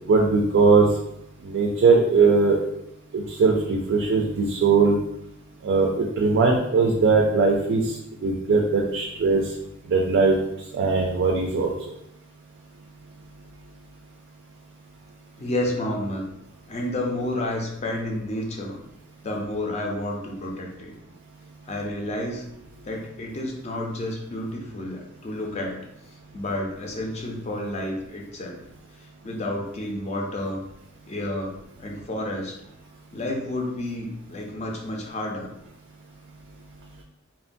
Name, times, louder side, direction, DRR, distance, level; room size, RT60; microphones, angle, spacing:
voice 1, 0.0-0.9 1.4-2.6 3.1-5.0 5.6-9.5 9.8-11.7, right 4 dB, 55° right, 1 dB, 0.3 m, -20 dB
voice 2, 15.4-16.2 16.7-18.8 19.2-20.9 21.6-22.5 22.8-25.8 26.3-28.6 29.0-30.6 31.1-31.5 31.8-32.6 33.1-35.5, left 1 dB, 35° left, 0 dB, 0.5 m, -30 dB
2.9 x 2.1 x 2.5 m, 0.82 s
head